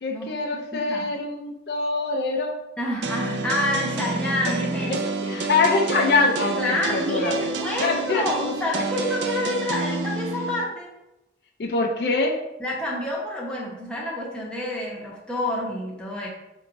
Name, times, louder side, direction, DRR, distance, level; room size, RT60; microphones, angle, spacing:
voice 1, 0.0-2.6 4.5-4.6 4.8-7.5 7.8-8.5 11.6-12.4, left 3 dB, 60° left, 1 dB, 0.4 m, -24 dB
voice 2, 0.7-1.1 2.8-5.5 6.6-10.9 12.6-16.3, left 1 dB, 5° left, -4 dB, 0.7 m, -28 dB
sound 1, 3.0-10.6, right 3 dB, 75° right, 0.4 m, -29 dB
4.5 x 2.9 x 2.5 m, 0.93 s
head